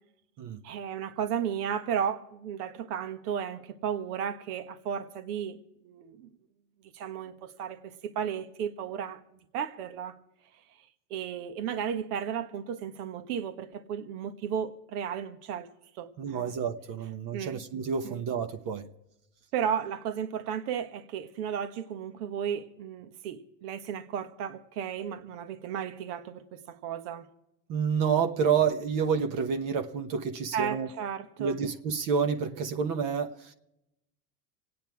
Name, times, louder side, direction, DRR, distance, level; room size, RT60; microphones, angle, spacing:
voice 1, 0.6-5.6 5.8-6.3 6.9-9.2 9.5-10.2 11.1-15.7 16.0-16.5 17.3-17.6 18.0-18.2 19.5-27.3 30.5-31.6, right 8 dB, 70° right, 1.6 m, -34 dB
voice 2, 16.2-18.9 27.7-30.9 31.4-33.5, right 6 dB, 40° right, 1.1 m, -29 dB
26.5 x 9.5 x 4.7 m
supercardioid pair, 125°, 47 cm